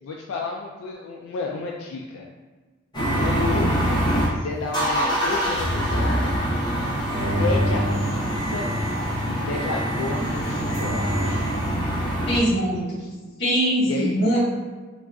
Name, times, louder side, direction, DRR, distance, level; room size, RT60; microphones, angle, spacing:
voice 1, 0.0-2.3 3.2-3.7 4.0-6.4 7.4-8.7 9.3-11.4 13.8-14.1, left 3 dB, 85° left, -1 dB, 0.3 m, -31 dB
sound 1, 2.9-4.3 4.7-12.4, equal, 20° left, 0.7 m, -24 dB
sound 2, 7.1-9.0 10.0-11.5, equal, 75° right, 0.9 m, -28 dB
voice 2, 12.3-13.0 13.4-14.4, equal, 55° left, -7 dB, 1.3 m, -22 dB
3.6 x 2.3 x 2.3 m, 1.3 s
head